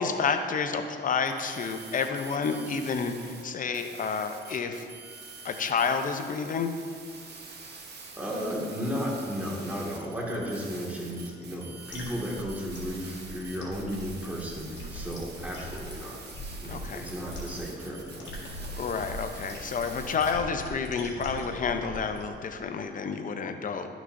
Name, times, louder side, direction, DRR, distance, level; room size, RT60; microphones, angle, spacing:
voice 1, 0.0-4.9 5.4-6.7 16.7-17.1 18.8-23.9, left 5 dB, 40° left, 6 dB, 0.7 m, -30 dB
sound 1, 1.2-3.4 3.7-20.3, right 4 dB, 55° right, 1.2 m, -46 dB
voice 2, 8.1-16.3 16.6-18.4, equal, 10° right, -5 dB, 1.9 m, -34 dB
sound 2, 11.9-22.3, left 1 dB, 65° left, 1.8 m, -41 dB
11.0 x 6.1 x 2.6 m, 2.1 s
cardioid pair, 90°, 20 cm